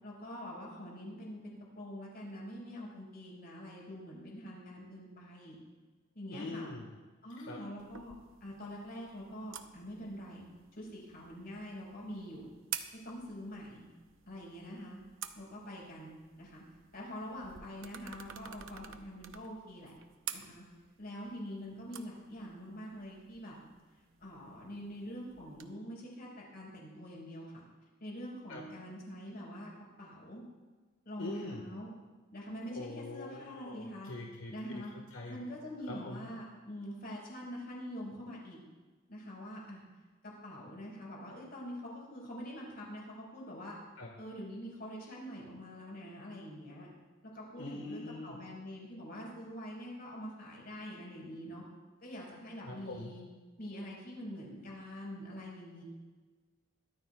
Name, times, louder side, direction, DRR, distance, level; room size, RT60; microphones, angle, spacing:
voice 1, 0.0-5.6 6.1-6.7 7.2-8.1 8.4-10.5 10.7-12.4 13.0-13.8 14.3-15.0 15.3-16.6 16.9-19.9 20.3-20.6 21.0-23.5 24.2-27.6 28.0-29.7 30.0-30.4 31.0-31.9 32.3-34.1 34.5-34.9 35.3-38.6 39.1-39.8 40.2-43.8 44.2-46.9 47.2-51.6 52.0-53.3 53.6-55.8, equal, 50° left, -3 dB, 5.0 m, -45 dB
voice 2, 6.3-6.9 7.5-7.6 28.5-28.6 31.2-31.6 32.7-34.8 35.1-35.4 35.9-36.2 44.0-44.1 47.6-48.4 52.6-53.1, left 2 dB, 80° left, 0 dB, 1.6 m, -43 dB
sound 1, 7.8-25.7, right 9 dB, 70° right, 0.8 m, -50 dB
21.5 x 14.0 x 2.3 m, 1.4 s
head